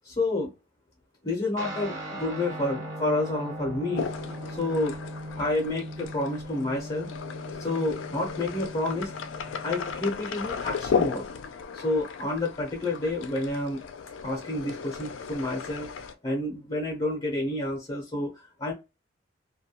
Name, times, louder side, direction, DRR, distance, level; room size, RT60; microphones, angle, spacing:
voice 1, 0.0-0.5 1.2-4.1 4.5-5.0 5.4-7.1 7.6-9.1 9.6-11.3 11.7-13.8 14.2-15.9 16.2-18.7, left 2 dB, 25° left, 0.6 m, -29 dB
Guitar, 1.6-11.3, equal, 40° right, 0.9 m, -40 dB
sound 1, 3.9-16.1, left 6 dB, 80° left, 0.4 m, -35 dB
2.3 x 2.2 x 2.8 m
head